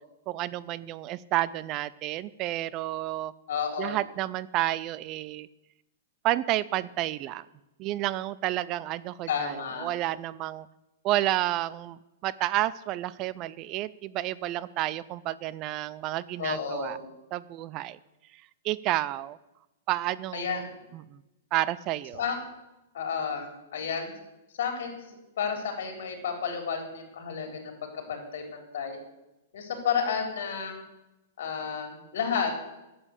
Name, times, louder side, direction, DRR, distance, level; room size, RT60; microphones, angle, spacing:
voice 1, 0.3-3.3 3.8-5.5 6.2-7.4 7.8-10.7 11.0-17.0 17.3-18.0 18.6-19.4 19.9-20.4 20.9-21.0 21.5-22.2, right 15 dB, 30° right, 18 dB, 0.4 m, -30 dB
voice 2, 3.5-4.0 9.3-9.9 16.4-17.1 20.3-20.7 22.1-22.4 22.9-24.1 24.6-25.0 25.4-29.0 29.5-30.8 31.4-32.5, left 6 dB, 70° left, 4 dB, 3.8 m, -31 dB
11.0 x 7.7 x 8.1 m, 0.96 s
hypercardioid pair, 155°, 0 cm